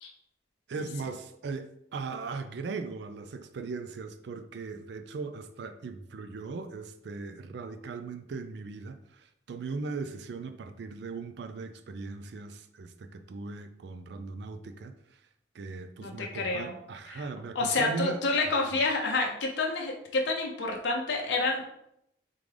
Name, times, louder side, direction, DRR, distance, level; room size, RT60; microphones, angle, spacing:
voice 1, 0.7-14.9 15.5-18.2 18.4-18.8, right 4 dB, 70° right, 9 dB, 0.4 m, -38 dB
voice 2, 16.0-16.8 17.1-17.3 17.5-21.8, left 3 dB, 80° left, 0 dB, 0.6 m, -29 dB
3.7 x 3.5 x 3.3 m, 0.77 s
head